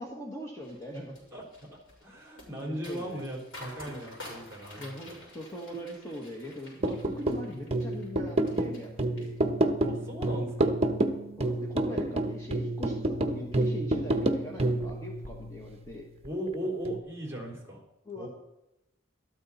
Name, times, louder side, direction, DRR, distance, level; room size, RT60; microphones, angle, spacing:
voice 1, 0.0-1.1 2.5-3.2 3.9-4.1 4.8-9.4 11.4-16.1 18.0-18.3, equal, 15° left, -1 dB, 1.6 m, -41 dB
sound 1, 0.6-8.9 9.2-9.8 10.2-10.5, left 1 dB, 80° left, 6.4 m, -49 dB
voice 2, 1.3-1.7 2.0-5.3 9.8-10.8 16.2-17.8 18.2-18.3, right 1 dB, 15° right, 0 dB, 3.9 m, -38 dB
sound 2, 6.8-16.3 16.8-17.0, right 1 dB, 30° right, 1.0 m, -29 dB
13.5 x 13.0 x 4.3 m, 0.90 s
head